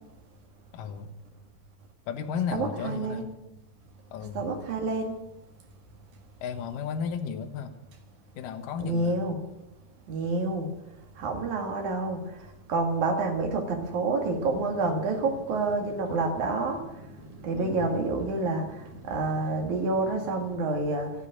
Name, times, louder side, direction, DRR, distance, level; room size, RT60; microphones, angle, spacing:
voice 1, 0.7-1.1 2.1-3.3 4.1-4.5 6.4-7.7 8.4-9.2 17.5-17.9, left 7 dB, 70° left, 7 dB, 2.1 m, -34 dB
voice 2, 2.5-3.2 4.3-5.2 8.8-9.3 10.1-10.7 11.2-16.8 17.4-21.1, right 3 dB, 50° right, 3 dB, 2.8 m, -28 dB
sound 1, 14.2-20.6, left 1 dB, 35° right, 2.8 m, -48 dB
13.0 x 11.0 x 8.8 m, 0.91 s
omnidirectional pair, 5.2 m